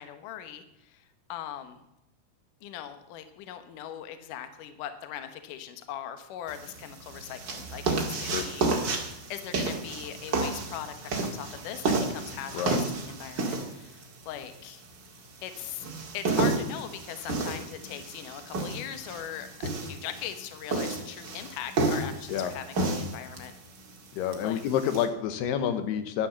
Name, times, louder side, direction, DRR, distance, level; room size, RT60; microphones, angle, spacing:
voice 1, 0.0-1.8 2.6-8.7 9.3-14.8 15.4-15.9 16.1-23.5 24.4-24.6, left 10 dB, 65° left, 9 dB, 2.4 m, -40 dB
sound 1, 6.5-25.0, right 3 dB, 40° right, 1.7 m, -32 dB
voice 2, 24.1-26.3, left 9 dB, 85° left, 9 dB, 3.0 m, -28 dB
11.5 x 10.0 x 7.3 m, 0.88 s
omnidirectional pair, 4.6 m